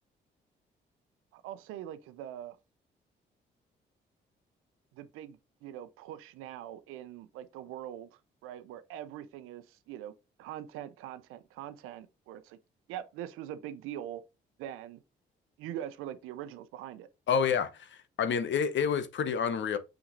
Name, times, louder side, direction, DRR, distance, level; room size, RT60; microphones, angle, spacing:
voice 1, 1.3-2.6 4.9-10.1 10.4-12.6 12.9-14.2 14.6-15.0 15.6-17.1, right 11 dB, 85° right, 0.8 m, -43 dB
voice 2, 17.3-19.8, left 7 dB, 60° left, 1.0 m, -29 dB
6.3 x 5.8 x 2.6 m
hypercardioid pair, 50°, 21 cm